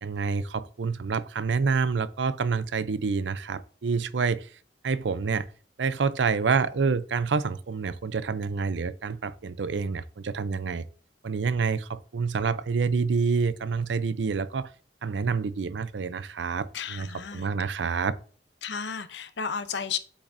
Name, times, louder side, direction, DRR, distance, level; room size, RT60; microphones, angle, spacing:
voice 1, 0.0-4.5 4.8-5.5 5.8-10.8 11.2-14.7 15.0-17.1 17.3-18.1, right 5 dB, 85° right, 0.5 m, -27 dB
voice 2, 16.7-17.5 18.6-20.0, left 6 dB, 75° left, 0.7 m, -33 dB
8.3 x 6.0 x 2.6 m
head